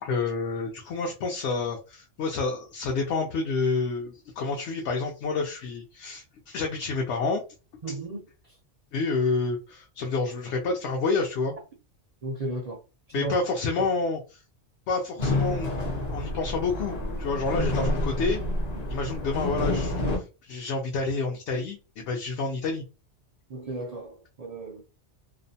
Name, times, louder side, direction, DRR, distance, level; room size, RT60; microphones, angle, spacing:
voice 1, 0.0-7.4 7.7-8.0 8.9-11.5 13.1-14.4 14.9-15.7 16.1-18.4 18.9-22.8, left 4 dB, 75° left, 0.8 m, -29 dB
voice 2, 7.8-8.2 12.2-12.8 13.1-13.3 13.8-13.9 23.5-24.8, right 2 dB, 60° right, 0.4 m, -34 dB
sound 1, 15.2-20.2, left 1 dB, 45° left, 0.7 m, -28 dB
2.5 x 2.0 x 2.6 m
omnidirectional pair, 1.2 m